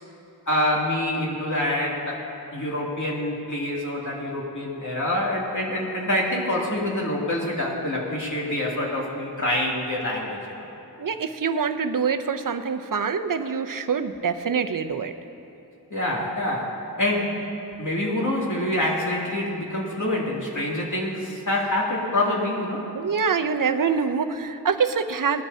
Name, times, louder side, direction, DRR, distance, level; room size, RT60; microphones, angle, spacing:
voice 1, 0.5-10.7 15.9-17.5 17.8-22.9, left 1 dB, 50° left, -4 dB, 2.6 m, -26 dB
voice 2, 11.0-15.1 22.9-25.4, right 6 dB, 55° right, 8 dB, 0.7 m, -25 dB
19.0 x 12.5 x 2.8 m, 3.0 s
wide cardioid pair, 75°, 38 cm